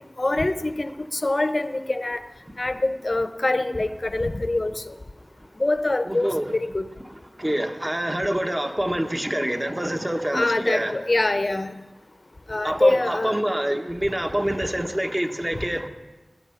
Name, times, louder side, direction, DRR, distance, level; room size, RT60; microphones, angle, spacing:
voice 1, 0.2-2.2 2.6-4.7 5.6-6.8 10.3-11.7 12.5-13.3, left 2 dB, 50° left, 0.8 m, -24 dB
voice 2, 6.1-6.5 7.1-11.0 12.6-15.9, right 1 dB, 25° right, 1.3 m, -26 dB
19.5 x 9.4 x 5.8 m
wide cardioid pair, 45°, 0 cm